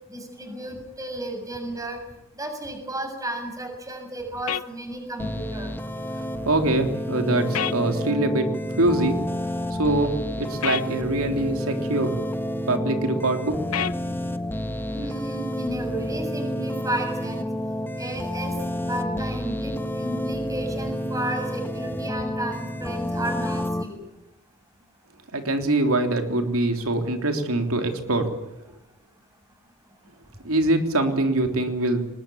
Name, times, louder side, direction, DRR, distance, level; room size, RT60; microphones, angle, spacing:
voice 1, 0.1-2.0 2.3-5.7 14.9-17.5 18.0-24.0, right 1 dB, 15° right, 4 dB, 6.8 m, -33 dB
sound 1, 4.5-4.7 7.5-7.8 10.6-10.9 13.7-14.0, left 9 dB, 80° left, 0.8 m, -26 dB
sound 2, 5.2-23.8, equal, 10° left, 1.3 m, -29 dB
voice 2, 6.4-8.5 8.8-9.2 9.7-12.1 12.7-13.6 25.3-28.3 30.4-32.0, right 2 dB, 80° right, 5 dB, 3.4 m, -23 dB
23.5 x 21.0 x 8.7 m, 0.94 s
head